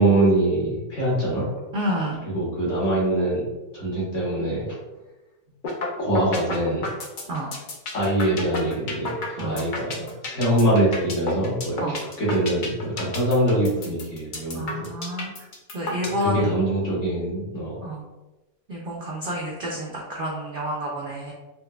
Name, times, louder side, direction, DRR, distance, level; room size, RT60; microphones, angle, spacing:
voice 1, 0.0-1.5 2.2-3.4 3.7-4.8 6.0-6.9 7.9-14.9 16.0-17.9, right 1 dB, 55° left, -6 dB, 1.5 m, -24 dB
voice 2, 1.7-2.2 7.3-7.5 9.4-10.1 11.8-12.0 14.5-15.3 15.7-16.6 17.8-18.0 18.7-21.3, equal, 85° right, -2 dB, 0.4 m, -29 dB
sound 1, 5.6-5.9 6.2-16.2, left 3 dB, 75° left, 0.4 m, -31 dB
4.4 x 2.1 x 2.2 m, 1.1 s
omnidirectional pair, 1.6 m